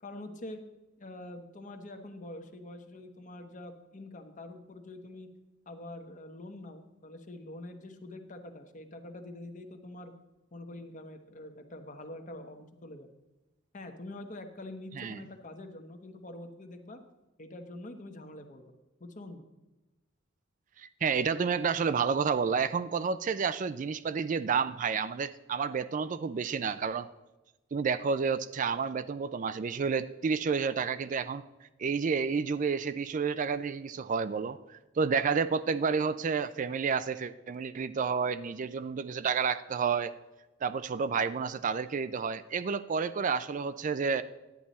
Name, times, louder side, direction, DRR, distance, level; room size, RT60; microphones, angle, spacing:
voice 1, 0.0-0.6 1.0-5.3 5.7-10.1 10.5-13.1 13.7-17.0 17.4-18.7 19.0-19.5, left 1 dB, 40° left, 6 dB, 1.0 m, -45 dB
voice 2, 20.8-27.1 27.7-31.4 31.8-40.1 40.6-44.2, right 5 dB, 40° right, 13 dB, 0.4 m, -30 dB
10.5 x 8.9 x 4.1 m, 1.1 s
head